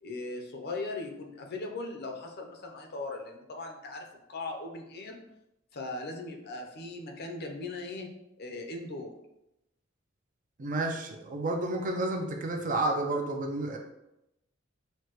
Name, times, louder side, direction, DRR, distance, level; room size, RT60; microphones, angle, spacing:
voice 1, 0.0-5.2 5.7-8.1 8.4-9.1, left 2 dB, 55° left, 2 dB, 0.6 m, -39 dB
voice 2, 10.6-13.8, right 2 dB, 40° right, 2 dB, 0.6 m, -30 dB
6.5 x 2.2 x 3.0 m, 0.87 s
head